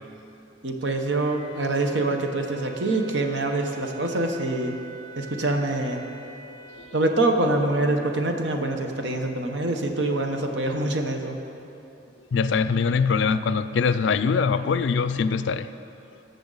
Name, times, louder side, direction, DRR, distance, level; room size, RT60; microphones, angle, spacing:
voice 1, 0.6-4.8 5.2-6.0 6.9-11.4, right 2 dB, 70° right, 3 dB, 1.0 m, -25 dB
Wind instrument woodwind instrument, 1.2-6.9, right 2 dB, 35° left, 1.5 m, -44 dB
voice 2, 12.3-15.7, left 5 dB, 75° left, 13 dB, 0.4 m, -23 dB
20.0 x 6.8 x 4.0 m, 2.9 s
head